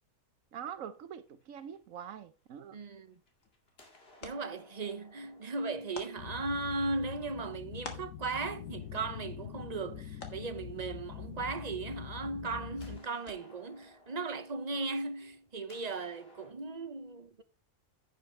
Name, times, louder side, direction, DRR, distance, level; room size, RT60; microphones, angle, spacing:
voice 1, 0.5-2.8, right 8 dB, 75° right, 1.2 m, -44 dB
sound 1, 0.9-2.7 3.1-10.4 11.9-12.0 12.8-16.5, left 2 dB, 45° left, 2.5 m, -62 dB
voice 2, 2.7-3.2 4.2-17.4, right 3 dB, 35° right, 0.7 m, -37 dB
sound 2, 3.0-13.8, left 3 dB, 70° left, 2.1 m, -54 dB
sound 3, 6.2-13.0, left 10 dB, 90° left, 1.3 m, -44 dB
10.5 x 8.6 x 3.2 m
omnidirectional pair, 1.4 m